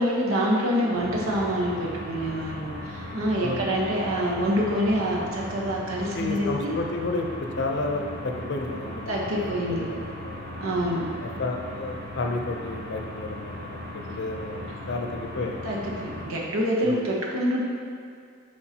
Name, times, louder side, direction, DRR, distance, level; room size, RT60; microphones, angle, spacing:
voice 1, 0.0-6.7 9.1-9.8 10.6-11.0 15.6-17.6, equal, 85° right, -3 dB, 1.1 m, -26 dB
sound 1, 0.9-16.3, left 1 dB, 50° right, 1.0 m, -38 dB
voice 2, 6.1-10.5 11.2-15.8 16.8-17.0, left 2 dB, 60° left, 3 dB, 0.6 m, -32 dB
8.7 x 4.8 x 2.9 m, 2.2 s
head